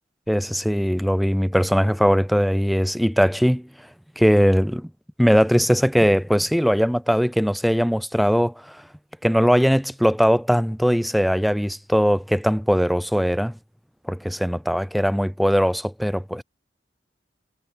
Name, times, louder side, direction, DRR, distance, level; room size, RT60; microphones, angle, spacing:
voice 1, 0.3-3.7 4.2-4.9 5.2-8.8 9.2-13.5 14.1-16.4, equal, ahead, 0.3 m, -20 dB
head